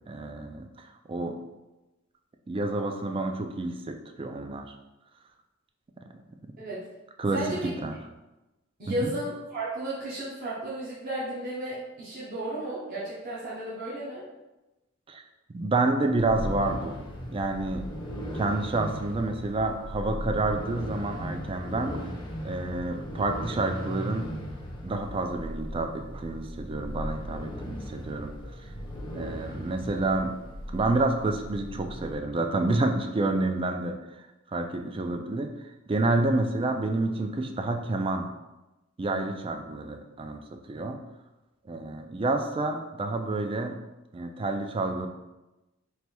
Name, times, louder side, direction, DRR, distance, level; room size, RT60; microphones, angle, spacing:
voice 1, 0.1-1.4 2.5-4.7 7.2-8.0 9.0-9.1 15.1-15.2 15.5-17.0 17.3-17.9 18.3-24.3 24.8-28.3 28.6-28.7 29.1-30.3 30.7-38.3 39.0-40.4 40.7-41.0 41.7-43.8 44.1-45.1, right 2 dB, 25° right, 5 dB, 0.3 m, -29 dB
voice 2, 7.3-7.7 8.8-14.2, right 1 dB, 45° right, -8 dB, 0.9 m, -33 dB
sound 1, 16.2-32.1, equal, 25° left, 0.6 m, -37 dB
3.3 x 2.6 x 4.3 m, 1.0 s
head